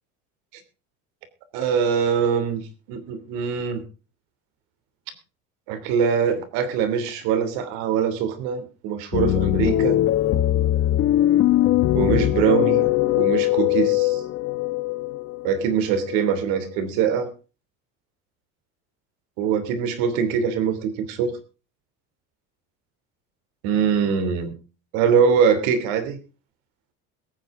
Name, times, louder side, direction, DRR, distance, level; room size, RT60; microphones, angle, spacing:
voice 1, 1.5-2.6 2.9-3.8 5.7-10.0 11.9-12.9 13.1-14.2 15.4-17.3 19.4-21.3 23.6-24.5 24.9-26.2, right 7 dB, 90° right, 11 dB, 3.1 m, -23 dB
sound 1, 9.1-16.6, left 14 dB, 45° left, 1.0 m, -21 dB
22.0 x 9.4 x 3.7 m, 0.34 s
cardioid pair, 165°, 32 cm